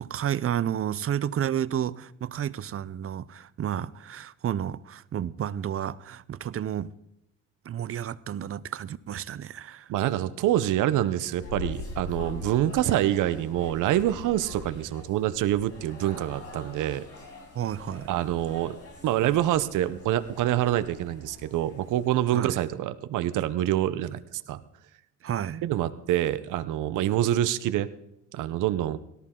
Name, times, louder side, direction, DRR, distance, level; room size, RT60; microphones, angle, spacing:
voice 1, 0.0-6.9 7.6-9.9 17.5-18.1 22.3-22.6 25.2-25.6, right 10 dB, 50° right, 0.6 m, -31 dB
voice 2, 9.9-17.0 18.1-18.8 19.0-24.6 25.6-27.9 28.3-29.0, right 13 dB, 85° right, 0.8 m, -26 dB
sound 1, 11.1-22.3, left 3 dB, 50° left, 6.1 m, -43 dB
18.0 x 13.5 x 3.8 m
cardioid pair, 90°, 30 cm